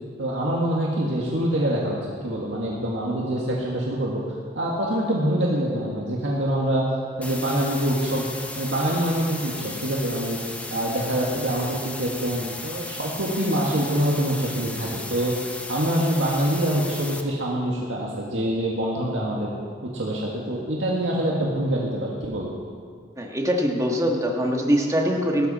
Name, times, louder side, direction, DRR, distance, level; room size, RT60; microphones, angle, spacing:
voice 1, 0.2-4.2 4.6-6.8 7.2-8.3 8.6-10.4 10.7-15.3 15.7-19.5 19.8-22.5, right 1 dB, 85° right, -4 dB, 1.9 m, -25 dB
sound 1, 7.2-17.2, left 2 dB, 10° left, 0.9 m, -36 dB
voice 2, 23.2-25.5, equal, 20° right, 1 dB, 1.6 m, -23 dB
17.5 x 13.0 x 4.2 m, 2.1 s
head